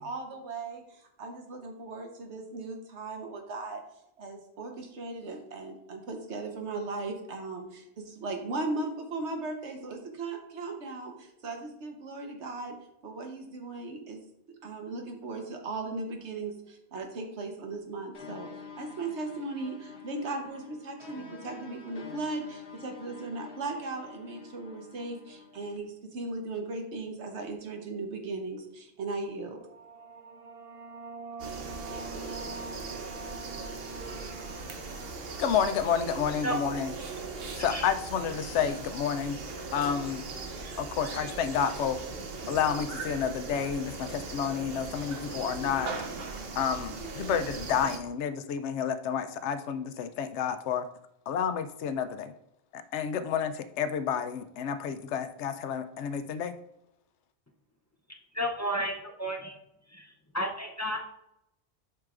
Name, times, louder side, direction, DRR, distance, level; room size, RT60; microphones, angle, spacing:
voice 1, 0.0-3.8 4.2-12.7 13.0-14.2 14.6-18.5 18.8-29.6, right 3 dB, 80° right, 3 dB, 1.3 m, -37 dB
sound 1, 18.1-25.8, left 5 dB, 70° left, 1.2 m, -47 dB
sound 2, 29.4-36.7, right 3 dB, 40° right, 0.5 m, -45 dB
sound 3, 31.4-48.0, right 3 dB, 60° right, 1.0 m, -39 dB
voice 2, 35.4-36.9 37.5-39.4 39.7-40.2 40.8-42.0 42.5-45.9 46.6-50.9 51.3-52.3 52.7-56.5, left 7 dB, 90° left, 10 dB, 0.9 m, -30 dB
voice 3, 37.6-37.9 58.3-59.6 59.9-61.1, equal, 20° left, 2 dB, 0.5 m, -32 dB
7.6 x 5.7 x 2.5 m, 0.82 s
omnidirectional pair, 1.1 m